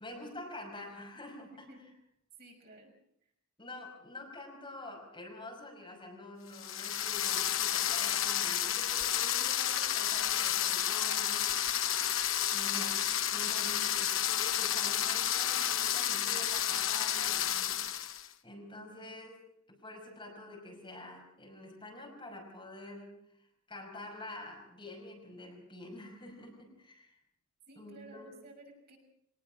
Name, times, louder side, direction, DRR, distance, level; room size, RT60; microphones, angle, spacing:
voice 1, 0.0-1.7 3.6-11.5 12.5-27.2 27.8-28.3, left 1 dB, 25° left, 0 dB, 5.4 m, -47 dB
voice 2, 2.4-2.9 27.7-29.0, right 1 dB, 50° right, 1 dB, 6.3 m, -54 dB
sound 1, 6.5-18.3, left 10 dB, 65° left, 0.9 m, -31 dB
23.5 x 19.0 x 6.2 m, 0.73 s
head